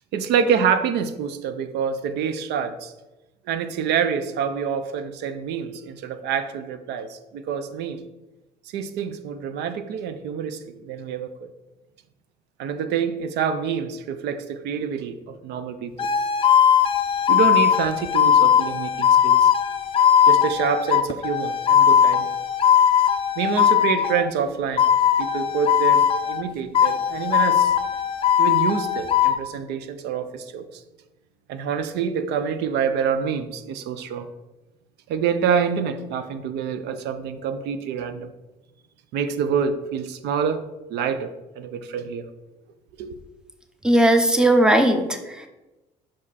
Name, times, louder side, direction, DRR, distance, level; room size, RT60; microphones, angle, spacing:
voice 1, 0.1-2.9 3.5-8.0 8.7-11.3 12.6-16.1 17.3-19.5 20.3-22.3 23.4-24.8 25.2-27.8 28.4-30.8 31.5-34.3 35.1-38.3 39.1-40.6 40.9-42.2 43.0-43.2, right 7 dB, 80° right, 11 dB, 0.6 m, -26 dB
sound 1, 16.0-24.3 24.8-26.5 26.7-29.4, left 9 dB, 30° left, 0.4 m, -19 dB
voice 2, 43.8-45.5, right 1 dB, 5° right, 5 dB, 0.8 m, -18 dB
5.8 x 5.1 x 4.1 m, 1.1 s
cardioid pair, 110°, 17 cm